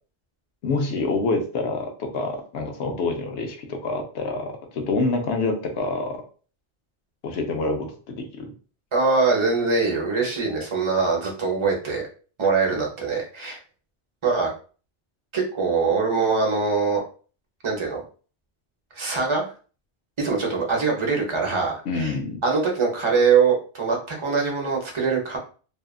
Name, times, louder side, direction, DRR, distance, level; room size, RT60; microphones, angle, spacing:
voice 1, 0.6-6.2 7.2-8.5 21.9-22.4, left 3 dB, 85° left, 4 dB, 0.9 m, -27 dB
voice 2, 8.9-12.1 12.4-13.6 14.2-14.5 15.3-17.0 17.6-18.0 18.9-19.4 20.2-22.1 22.4-25.4, right 4 dB, 30° right, -1 dB, 0.7 m, -23 dB
2.7 x 2.4 x 2.3 m, 0.38 s
omnidirectional pair, 1.1 m